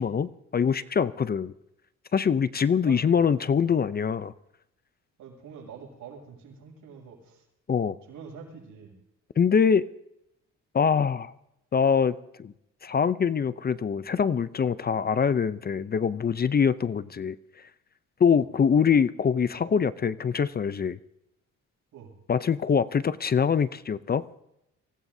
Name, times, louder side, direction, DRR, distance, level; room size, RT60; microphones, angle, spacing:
voice 1, 0.0-1.5 2.1-4.3 7.7-8.0 9.4-9.9 10.7-11.3 11.7-12.5 12.8-17.4 18.2-21.0 22.3-24.2, left 6 dB, 30° left, 16 dB, 0.6 m, -24 dB
voice 2, 2.8-3.8 5.2-7.4 8.1-8.9 16.9-17.0 21.9-22.1, right 6 dB, 80° right, 0 dB, 6.7 m, -46 dB
24.5 x 18.0 x 2.7 m, 0.83 s
cardioid pair, 90°, 30 cm